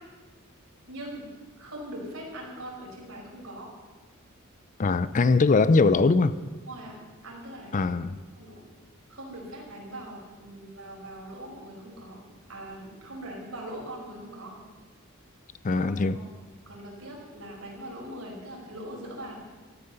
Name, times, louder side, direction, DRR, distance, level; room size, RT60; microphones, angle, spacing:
voice 1, 0.9-1.3 1.6-3.7 6.7-6.9 7.2-8.0 8.3-8.6 9.1-12.2 12.5-14.6 15.7-16.2 16.7-19.4, right 1 dB, 70° right, -1 dB, 5.0 m, -41 dB
voice 2, 4.8-6.3 7.7-8.2 15.6-16.2, left 3 dB, 35° left, 15 dB, 0.4 m, -21 dB
14.0 x 12.0 x 6.6 m, 1.3 s
head